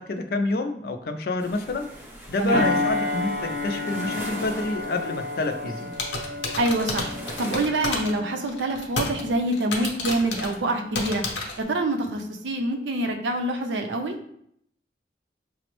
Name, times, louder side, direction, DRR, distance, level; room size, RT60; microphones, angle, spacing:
voice 1, 0.1-1.9 2.3-5.9, left 2 dB, 55° left, 6 dB, 0.4 m, -28 dB
sound 1, 1.4-7.6, equal, 10° right, 0.5 m, -41 dB
voice 2, 2.4-2.7 6.6-11.2 11.6-14.1, right 1 dB, 80° right, 4 dB, 0.5 m, -26 dB
sound 2, 2.5-11.4 11.8-12.1, left 2 dB, 50° right, 0.7 m, -32 dB
sound 3, 5.9-8.2 8.5-9.2 9.5-10.5 10.9-11.6, left 3 dB, 85° left, 0.7 m, -30 dB
4.9 x 2.0 x 3.0 m, 0.71 s
head